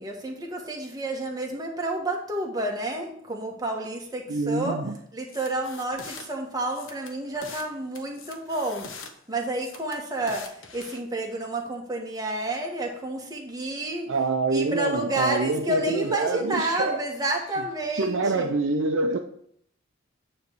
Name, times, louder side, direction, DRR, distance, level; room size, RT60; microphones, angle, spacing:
voice 1, 0.0-4.8 5.1-14.1 14.5-18.5, right 1 dB, 20° right, 0 dB, 1.3 m, -30 dB
voice 2, 4.3-4.9 14.1-17.0 18.0-19.2, right 3 dB, 70° right, 5 dB, 0.5 m, -26 dB
sound 1, 5.3-6.3 6.7-7.7 8.0-9.1 9.6-11.0, left 5 dB, 70° left, 0.9 m, -42 dB
9.2 x 3.2 x 6.6 m, 0.67 s
head